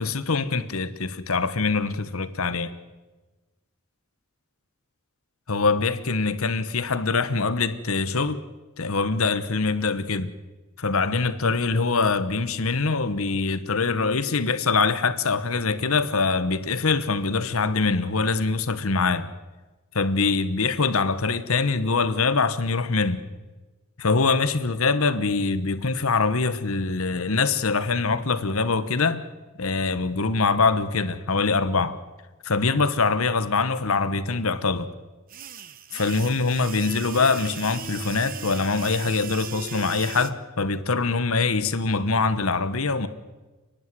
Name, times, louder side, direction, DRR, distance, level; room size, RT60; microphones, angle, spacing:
voice 1, 0.0-2.7 5.5-8.4 8.8-10.3 10.8-19.3 19.9-23.2 24.0-29.2 29.6-32.0 32.4-34.9 35.9-43.1, left 4 dB, 80° left, 1.2 m, -24 dB
sound 1, 35.3-40.3, right 7 dB, 40° right, 1.0 m, -38 dB
30.0 x 10.5 x 9.5 m
head